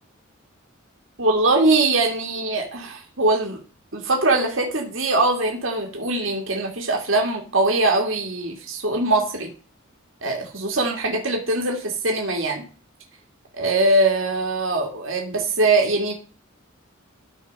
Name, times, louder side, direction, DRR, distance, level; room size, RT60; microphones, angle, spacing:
voice 1, 1.2-3.6 3.9-9.5 10.2-12.6 13.5-16.1, right 2 dB, 65° right, 0 dB, 2.2 m, -22 dB
13.0 x 4.4 x 5.4 m, 0.38 s
head